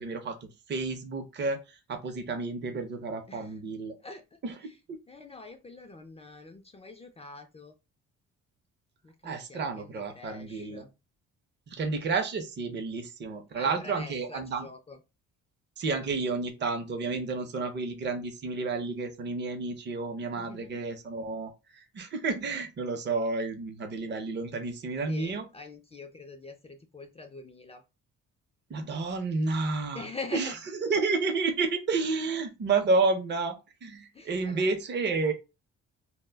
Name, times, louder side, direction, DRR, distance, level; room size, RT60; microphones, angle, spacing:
voice 1, 0.0-1.6 1.9-4.0 4.4-4.5 4.9-5.0 9.2-10.8 11.7-14.7 15.8-25.5 28.7-30.1 30.3-30.5 30.8-35.3, right 3 dB, 35° right, 5 dB, 0.6 m, -30 dB
voice 2, 3.3-3.6 4.0-4.8 5.1-7.7 9.0-10.9 13.6-15.0 20.4-20.8 25.1-27.8 29.9-30.6 34.1-34.7, left 3 dB, 20° left, 5 dB, 0.4 m, -45 dB
2.1 x 2.0 x 3.3 m, 0.27 s
cardioid pair, 90°, 30 cm